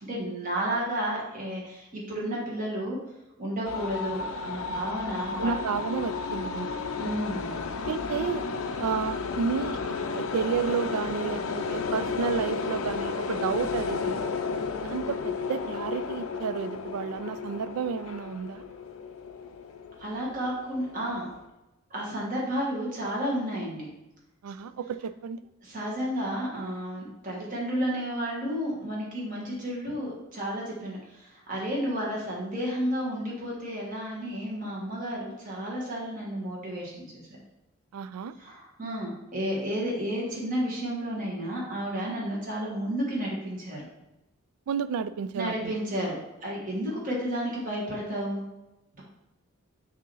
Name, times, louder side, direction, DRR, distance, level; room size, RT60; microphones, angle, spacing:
voice 1, 0.0-3.0 3.4-5.6 7.0-7.7 20.0-21.3 21.9-23.9 25.6-37.2 38.4-43.8 45.3-48.4 48.9-49.0, equal, 35° right, -4 dB, 1.5 m, -32 dB
sound 1, 3.6-21.4, left 4 dB, 70° left, 0.4 m, -33 dB
voice 2, 5.4-6.7 7.8-8.4 8.8-14.2 14.8-18.6 24.4-25.4 37.9-38.3 44.7-45.7, right 6 dB, 85° right, 14 dB, 0.3 m, -31 dB
6.2 x 2.8 x 5.4 m, 0.95 s
head